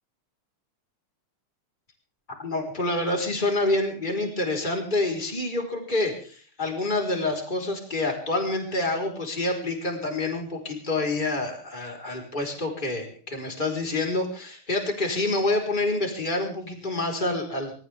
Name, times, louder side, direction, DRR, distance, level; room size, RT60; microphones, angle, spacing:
voice 1, 2.4-17.7, left 2 dB, 20° left, 1 dB, 4.6 m, -27 dB
28.5 x 14.5 x 3.5 m, 0.43 s
omnidirectional pair, 2.4 m